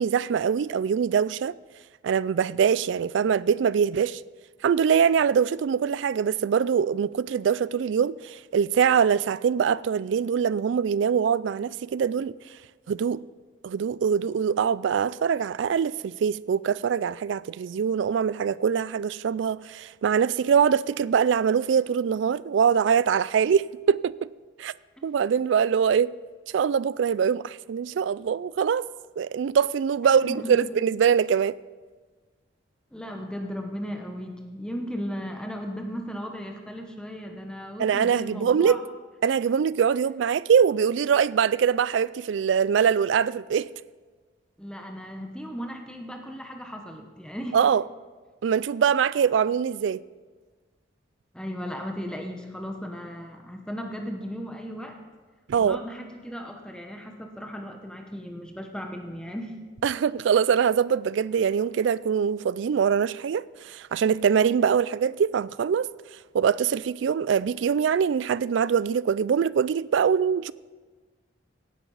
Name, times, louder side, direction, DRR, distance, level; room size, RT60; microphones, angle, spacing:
voice 1, 0.0-1.5 2.0-4.2 4.6-12.3 12.9-13.2 13.6-24.3 24.6-24.7 25.0-26.1 26.5-28.9 29.2-31.6 37.8-38.8 39.2-43.7 47.5-47.8 48.4-50.0 55.5-55.8 59.8-65.9 66.3-70.5, right 7 dB, 70° right, 0.3 m, -23 dB
voice 2, 30.0-30.7 32.9-38.8 44.6-47.6 51.3-55.0 55.6-59.5, equal, 5° left, 0.9 m, -36 dB
17.5 x 10.5 x 4.0 m
head